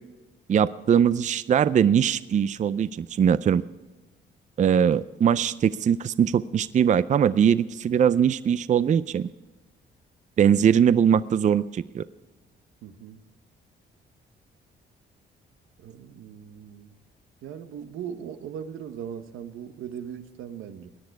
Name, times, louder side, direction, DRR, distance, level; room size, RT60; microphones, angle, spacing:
voice 1, 0.5-3.6 4.6-9.3 10.4-12.0, right 8 dB, 40° right, 16 dB, 0.4 m, -21 dB
voice 2, 12.8-13.2 15.8-16.9 17.4-20.9, right 8 dB, 85° right, 9 dB, 1.1 m, -39 dB
17.5 x 10.5 x 4.7 m, 1.1 s
cardioid pair, 90°, 20 cm